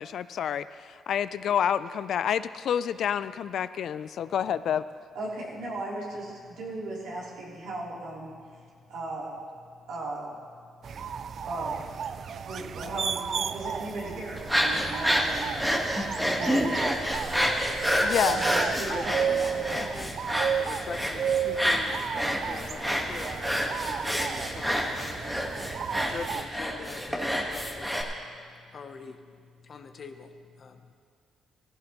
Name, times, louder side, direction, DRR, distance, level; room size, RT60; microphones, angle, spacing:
voice 1, 0.0-4.8 18.0-18.4, left 9 dB, 65° left, 14 dB, 0.3 m, -28 dB
voice 2, 5.1-8.3 8.9-9.3 9.9-10.3 11.4-11.8 12.4-15.8 16.2-16.9 18.4-19.8, right 2 dB, 80° right, -6 dB, 3.3 m, -37 dB
voice 3, 10.6-11.5 12.2-12.5 12.8-12.9 17.4-19.0 19.6-22.1 22.4-30.9, left 5 dB, 50° left, 6 dB, 0.8 m, -44 dB
sound 1, 10.8-26.4, right 7 dB, 55° right, 0.4 m, -33 dB
sound 2, 14.4-28.0, equal, 5° right, 1.4 m, -29 dB
15.5 x 15.5 x 3.0 m, 2.1 s
cardioid pair, 90°, 0 cm